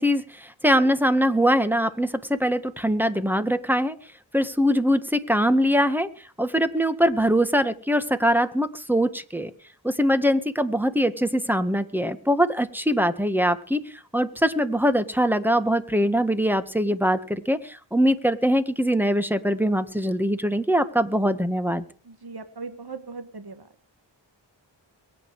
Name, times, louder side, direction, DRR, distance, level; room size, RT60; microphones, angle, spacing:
voice 1, 0.0-4.0 4.3-6.1 6.4-9.5 9.8-13.8 14.1-21.8, equal, 5° right, 11 dB, 1.7 m, -22 dB
voice 2, 22.1-23.6, right 4 dB, 55° right, 9 dB, 2.0 m, -38 dB
22.5 x 9.7 x 4.9 m, 0.39 s
wide cardioid pair, 50°, 46 cm